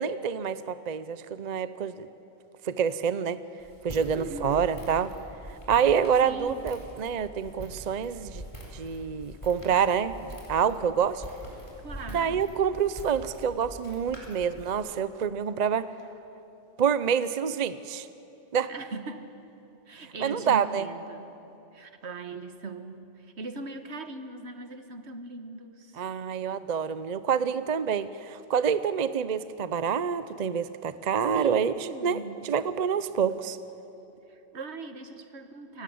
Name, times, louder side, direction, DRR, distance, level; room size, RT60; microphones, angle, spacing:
voice 1, 0.0-2.1 2.6-3.4 3.8-5.1 5.7-8.4 8.7-11.2 12.1-15.8 16.8-18.1 18.5-18.7 20.2-20.8 26.0-31.7 32.0-33.6, right 7 dB, 45° right, 14 dB, 0.6 m, -27 dB
Walk footsteps, 3.6-14.7, equal, 25° left, 4.7 m, -44 dB
voice 2, 4.1-4.7 6.2-6.6 11.8-12.4 18.7-19.3 19.9-21.4 21.7-26.0 31.3-32.4 34.3-35.8, right 3 dB, 70° right, 8 dB, 1.6 m, -40 dB
28.5 x 17.0 x 7.9 m, 3.0 s
omnidirectional pair, 1.2 m